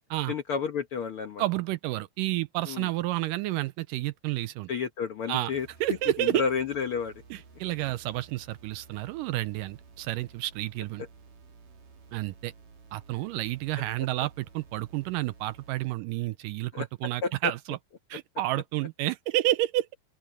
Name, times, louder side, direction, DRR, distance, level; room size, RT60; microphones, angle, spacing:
voice 1, 0.3-1.4 2.7-2.9 4.7-5.7 6.2-7.1 16.7-16.9 17.2-17.5, left 6 dB, 75° left, 1.2 m, -30 dB
voice 2, 1.4-4.7 5.3-5.5 5.8-6.4 7.3-11.0 12.1-12.5 12.9-17.8 18.1-19.9, right 16 dB, 80° right, 2.0 m, -30 dB
sound 1, 5.5-16.0, right 4 dB, 65° right, 5.0 m, -54 dB
open air
omnidirectional pair, 4.2 m